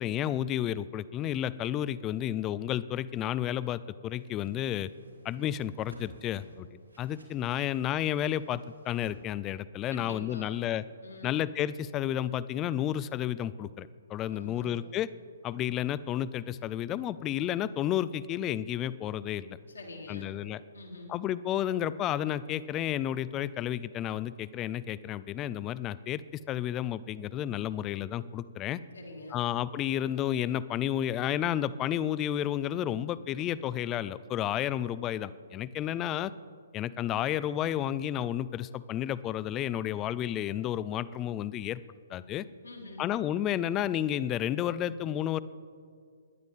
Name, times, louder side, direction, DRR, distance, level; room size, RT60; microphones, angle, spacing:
voice 1, 0.0-4.9 5.2-10.8 11.2-15.1 15.4-19.6 20.1-20.6 21.1-28.8 29.3-36.3 36.7-41.8 42.1-42.5 43.0-45.4, left 11 dB, 20° left, 18 dB, 0.3 m, -31 dB
Whoosh swoosh swish, 4.1-9.1, right 1 dB, 80° right, 3.1 m, -56 dB
voice 2, 9.9-10.6 11.0-11.4 14.3-14.9 19.7-20.4 20.7-21.1 28.9-29.4 42.6-43.0, left 2 dB, 70° left, -1 dB, 2.8 m, -45 dB
21.5 x 10.5 x 3.6 m, 2.2 s
figure-of-eight pair, 125°, 0 cm